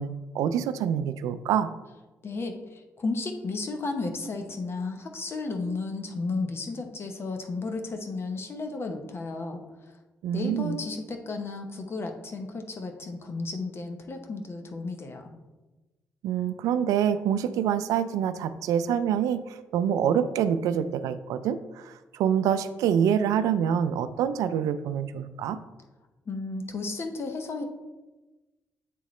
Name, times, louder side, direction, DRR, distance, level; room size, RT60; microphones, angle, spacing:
voice 1, 0.0-1.7 10.2-10.8 16.2-19.4 19.7-25.6, right 8 dB, 85° right, 12 dB, 0.3 m, -26 dB
voice 2, 2.2-9.6 10.3-15.3 26.3-27.7, left 3 dB, 45° left, 5 dB, 0.9 m, -33 dB
8.5 x 3.7 x 3.2 m, 1.1 s
cardioid pair, 65°, 6 cm